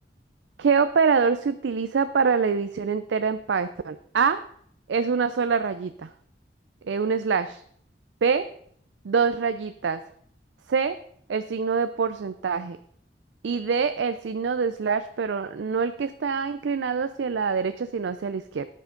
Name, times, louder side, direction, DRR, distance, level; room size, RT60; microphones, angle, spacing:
voice 1, 0.6-4.4 4.9-6.1 6.9-7.6 8.2-8.5 9.0-10.0 10.7-11.0 11.3-12.8 13.4-18.7, right 5 dB, 90° right, 11 dB, 0.4 m, -25 dB
9.9 x 8.6 x 3.8 m, 0.64 s
head